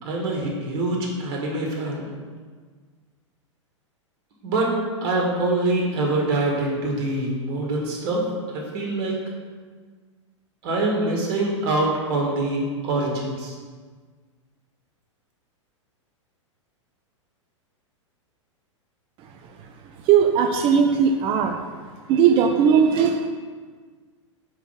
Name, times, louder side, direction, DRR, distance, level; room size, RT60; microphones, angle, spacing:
voice 1, 0.0-2.1 4.4-4.7 5.0-9.2 10.6-13.6, right 2 dB, 50° right, -1 dB, 1.8 m, -24 dB
voice 2, 20.1-21.6 22.1-23.3, right 7 dB, 35° right, 5 dB, 0.5 m, -18 dB
5.1 x 4.7 x 5.8 m, 1.5 s
figure-of-eight pair, 100°, 16 cm